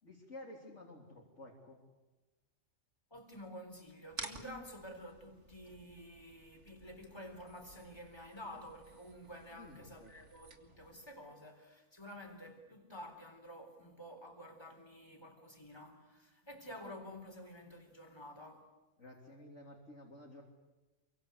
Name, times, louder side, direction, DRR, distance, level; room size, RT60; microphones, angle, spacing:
voice 1, 0.0-1.8 9.5-10.1 19.0-20.4, left 1 dB, 75° left, 3.9 m, -52 dB
voice 2, 3.1-18.7, equal, 20° left, 4.1 m, -50 dB
sound 1, 4.1-11.1, right 3 dB, 70° right, 2.4 m, -53 dB
28.5 x 24.0 x 8.2 m
omnidirectional pair, 1.3 m